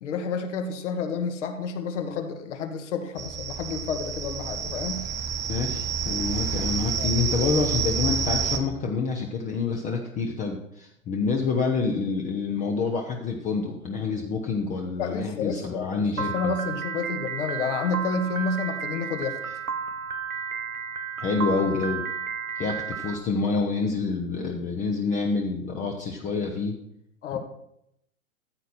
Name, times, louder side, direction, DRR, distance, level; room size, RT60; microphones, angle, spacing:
voice 1, 0.0-5.0 7.0-7.1 15.0-19.4 27.2-27.4, left 5 dB, 60° left, 6 dB, 1.9 m, -30 dB
sound 1, 3.2-8.6, right 6 dB, 10° right, 0.4 m, -29 dB
voice 2, 5.5-16.5 21.2-22.0 22.6-26.7, left 4 dB, 20° left, 2 dB, 1.0 m, -27 dB
Piano, 16.2-23.1, right 6 dB, 90° right, 1.3 m, -32 dB
14.0 x 8.1 x 4.4 m, 0.78 s
hypercardioid pair, 125°, 41 cm